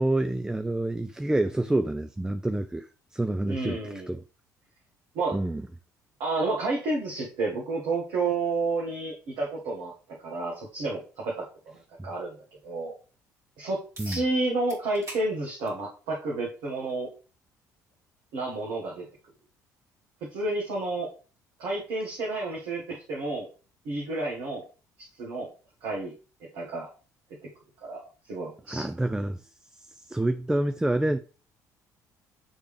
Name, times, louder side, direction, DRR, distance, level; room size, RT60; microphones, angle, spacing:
voice 1, 0.0-4.2 5.3-5.6 14.0-14.2 28.7-29.4 30.1-31.2, right 1 dB, 5° right, 0.4 m, -27 dB
voice 2, 3.5-4.1 5.1-5.4 6.2-9.9 10.2-11.5 12.0-12.3 12.6-13.0 13.6-17.1 18.3-19.1 20.3-21.1 21.6-23.5 23.8-24.6 25.0-25.5 25.8-26.1 26.5-26.9 27.8-28.9, right 2 dB, 60° right, 1.4 m, -30 dB
sound 1, 14.0-14.3 14.7-15.3 15.7-15.8 16.9-17.0 21.9-22.0, right 1 dB, 35° right, 2.1 m, -42 dB
8.8 x 3.3 x 3.2 m
figure-of-eight pair, 50°, 9 cm